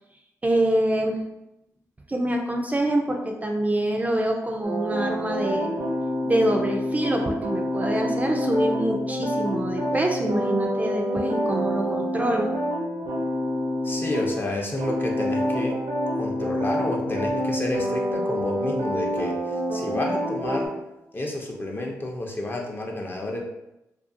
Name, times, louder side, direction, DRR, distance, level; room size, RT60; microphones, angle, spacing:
voice 1, 0.4-1.2 2.1-5.7 6.3-12.5, right 1 dB, 25° right, 1 dB, 0.4 m, -25 dB
sound 1, 4.6-14.4 14.8-20.7, equal, 85° right, 0.6 m, -27 dB
voice 2, 13.8-15.8 16.2-20.8 21.1-23.4, left 2 dB, 30° left, 0 dB, 0.6 m, -30 dB
2.4 x 2.3 x 2.5 m, 0.90 s
cardioid pair, 55°, 7 cm